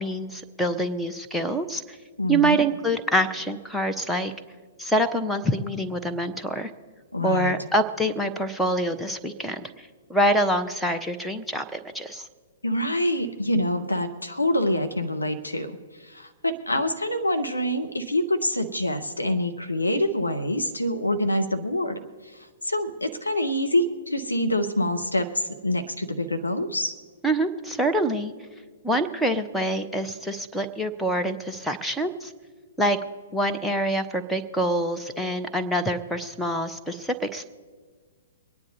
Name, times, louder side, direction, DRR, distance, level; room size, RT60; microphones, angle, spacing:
voice 1, 0.0-2.0 2.3-4.3 4.8-6.7 7.2-12.3 27.2-28.3 28.8-32.3 32.8-33.0 33.3-37.5, right 1 dB, ahead, 5 dB, 0.9 m, -26 dB
voice 2, 2.2-2.6 7.1-7.5 12.6-15.7 16.0-22.0 22.6-26.9, left 1 dB, 85° left, 7 dB, 1.0 m, -26 dB
24.0 x 9.7 x 4.0 m, 1.5 s
figure-of-eight pair, 115°, 0 cm